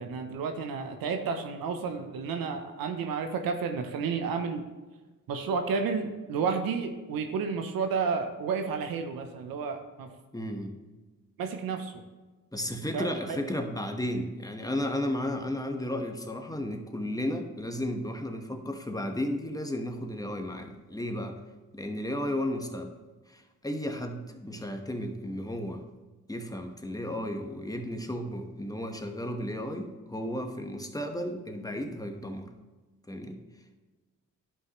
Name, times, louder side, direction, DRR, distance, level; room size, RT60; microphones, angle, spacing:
voice 1, 0.0-4.6 5.3-10.1 11.4-12.0 12.9-13.4, right 5 dB, 80° right, 5 dB, 0.8 m, -31 dB
voice 2, 10.3-10.8 12.5-21.4 21.7-22.9 23.3-25.8 26.3-32.5 33.1-33.4, left 1 dB, 10° left, 5 dB, 1.2 m, -34 dB
11.0 x 5.5 x 3.1 m, 1.2 s
supercardioid pair, 50°, 34 cm